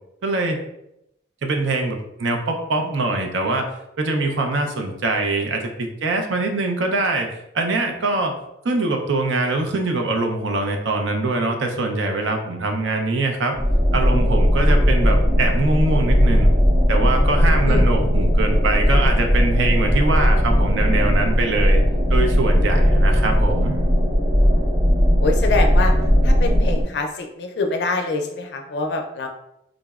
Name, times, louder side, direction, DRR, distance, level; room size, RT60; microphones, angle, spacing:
voice 1, 0.2-0.6 1.4-3.7 4.0-7.3 7.5-8.4 8.6-13.6 13.9-16.5 16.9-21.8 22.1-23.7, right 2 dB, 85° right, 4 dB, 0.5 m, -23 dB
sound 1, 13.5-26.8, equal, 35° right, 0.6 m, -17 dB
voice 2, 25.2-25.9 26.2-29.3, left 3 dB, 65° left, 4 dB, 0.4 m, -25 dB
3.7 x 2.0 x 2.3 m, 0.82 s
head